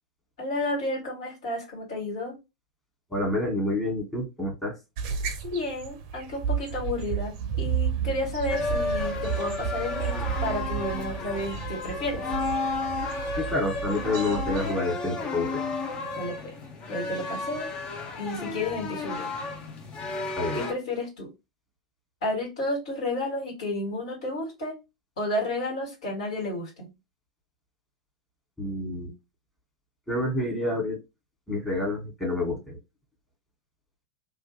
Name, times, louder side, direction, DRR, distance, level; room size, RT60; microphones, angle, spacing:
voice 1, 0.4-2.4 5.4-12.2 16.2-16.5 16.9-17.7 18.2-19.3 20.5-21.3 22.2-24.8 25.2-26.9, left 1 dB, 65° left, -1 dB, 2.0 m, -31 dB
voice 2, 3.1-4.8 13.4-15.6 20.4-20.6 28.6-29.1 30.1-31.0 31.5-32.8, left 2 dB, 10° left, -1 dB, 1.7 m, -28 dB
sound 1, 5.0-14.7, right 7 dB, 45° right, 0.6 m, -32 dB
sound 2, 8.5-20.7, left 3 dB, 30° left, 0.8 m, -32 dB
3.0 x 2.4 x 3.2 m, 0.24 s
figure-of-eight pair, 95°, 4 cm